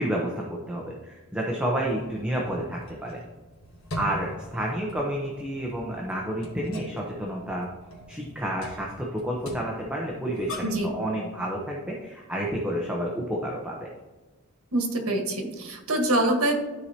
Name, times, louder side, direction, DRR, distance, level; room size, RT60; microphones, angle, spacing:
voice 1, 0.0-3.2 3.9-7.7 8.1-13.9, right 1 dB, 5° right, -2 dB, 0.8 m, -30 dB
sound 1, 1.8-10.9, left 1 dB, 65° left, 1.7 m, -42 dB
voice 2, 10.6-10.9 14.7-16.5, right 1 dB, 80° right, 3 dB, 1.5 m, -25 dB
13.0 x 4.7 x 2.8 m, 1.3 s
head